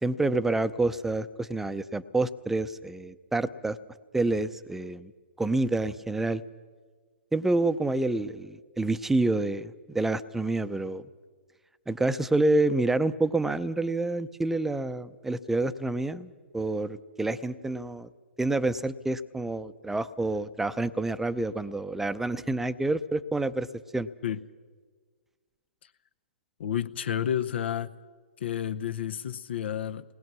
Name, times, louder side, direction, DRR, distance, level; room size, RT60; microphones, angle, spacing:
voice 1, 0.0-3.8 4.1-5.1 5.4-6.4 7.3-11.0 11.9-18.1 18.4-23.7 23.9-24.1, right 2 dB, 5° right, 13 dB, 0.6 m, -28 dB
voice 2, 26.6-27.9 28.4-30.0, left 9 dB, 65° left, 11 dB, 0.8 m, -30 dB
28.0 x 20.0 x 6.1 m, 1.5 s
hypercardioid pair, 130°, 6 cm